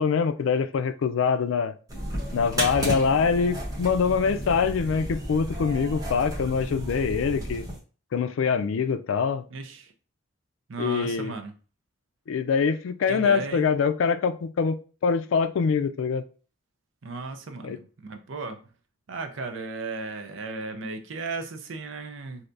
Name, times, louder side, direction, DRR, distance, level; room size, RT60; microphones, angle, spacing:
voice 1, 0.0-1.7 2.3-7.6 8.1-9.4 10.8-11.3 12.3-16.2 17.6-17.8, left 5 dB, 90° left, 0.4 m, -24 dB
sound 1, 1.9-7.8, right 1 dB, 20° right, 1.0 m, -32 dB
voice 2, 9.5-9.9 10.7-11.5 13.1-13.7 17.0-18.6 19.1-22.5, right 3 dB, 80° right, 0.5 m, -35 dB
3.3 x 2.7 x 2.5 m
head